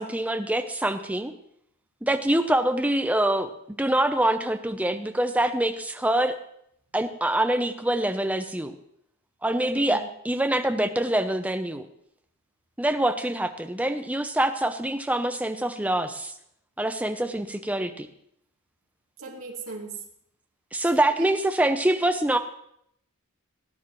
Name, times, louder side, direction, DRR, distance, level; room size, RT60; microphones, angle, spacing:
voice 1, 0.0-1.3 2.0-3.5 3.8-6.4 6.9-8.8 9.4-11.9 12.8-16.3 16.8-18.1 20.7-22.4, right 1 dB, 5° right, 7 dB, 0.6 m, -25 dB
voice 2, 9.7-10.0 19.2-20.0, right 3 dB, 75° right, -6 dB, 2.7 m, -38 dB
18.0 x 9.9 x 3.1 m, 0.73 s
head